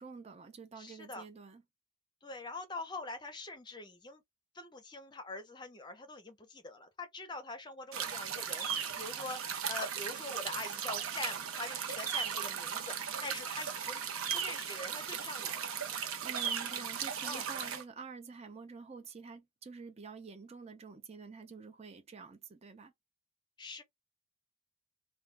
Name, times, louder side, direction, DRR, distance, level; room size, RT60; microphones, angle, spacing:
voice 1, 0.0-1.6 16.2-22.9, right 4 dB, 30° right, 0.4 m, -48 dB
voice 2, 0.8-1.3 2.2-4.2 4.5-8.7 8.9-9.4 9.7-14.0 14.3-15.6 17.2-17.5 23.6-23.8, left 3 dB, 20° left, 0.6 m, -44 dB
sound 1, 7.9-17.8, right 7 dB, 85° right, 0.7 m, -37 dB
2.2 x 2.2 x 3.2 m
head